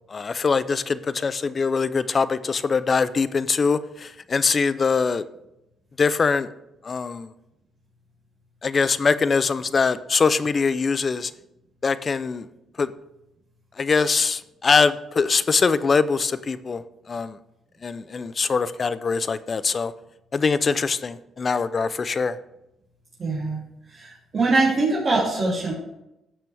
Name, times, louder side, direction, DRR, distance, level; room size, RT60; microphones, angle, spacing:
voice 1, 0.1-5.3 6.0-6.5 6.8-7.3 8.6-11.3 11.8-12.5 12.8-12.9 13.8-17.4 17.8-19.9 20.3-22.4, left 5 dB, 40° left, 15 dB, 0.5 m, -23 dB
voice 2, 23.2-23.6 23.9-25.7, right 3 dB, 45° right, -6 dB, 2.9 m, -23 dB
15.0 x 5.9 x 3.4 m, 0.89 s
cardioid pair, 90°, 0 cm